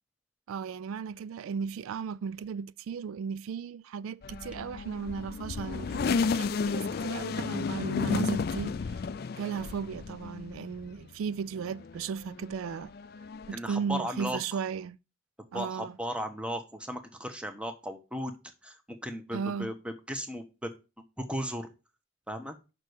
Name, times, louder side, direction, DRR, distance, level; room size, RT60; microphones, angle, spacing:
voice 1, 0.5-9.0 9.4-12.9 13.5-15.0 15.5-16.0 19.3-19.7, right 6 dB, 85° right, 0.3 m, -36 dB
sound 1, 4.2-11.1 11.5-13.5, left 4 dB, 50° left, 0.3 m, -33 dB
voice 2, 13.5-14.6 15.5-18.3 18.6-19.7 20.1-20.7 21.2-21.7 22.3-22.6, equal, 5° right, 0.9 m, -36 dB
6.3 x 5.3 x 6.5 m
head